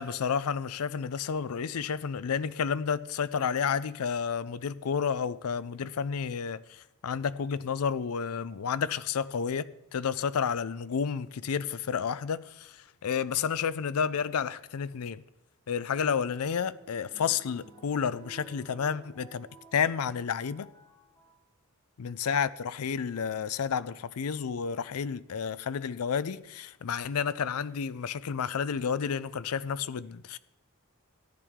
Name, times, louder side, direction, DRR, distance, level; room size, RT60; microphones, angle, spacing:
voice 1, 0.0-15.2 15.7-20.7 22.0-30.4, left 6 dB, 85° left, 0.5 m, -31 dB
sound 1, 15.8-21.4 22.1-22.6 23.8-23.9 24.6-24.9 27.1-27.7 28.4-28.5 28.7-28.8, right 3 dB, 25° left, 4.1 m, -56 dB
14.0 x 10.0 x 3.6 m
head